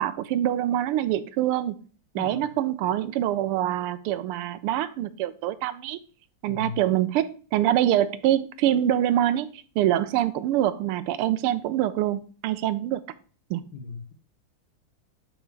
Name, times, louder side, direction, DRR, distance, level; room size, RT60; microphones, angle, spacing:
voice 1, 0.0-1.8 2.1-6.0 6.4-13.0 13.5-13.6, right 12 dB, 85° right, 1.5 m, -25 dB
voice 2, 2.1-2.5 6.5-6.8 13.7-14.1, left 5 dB, 65° left, 1.6 m, -37 dB
5.4 x 5.0 x 4.6 m
omnidirectional pair, 2.4 m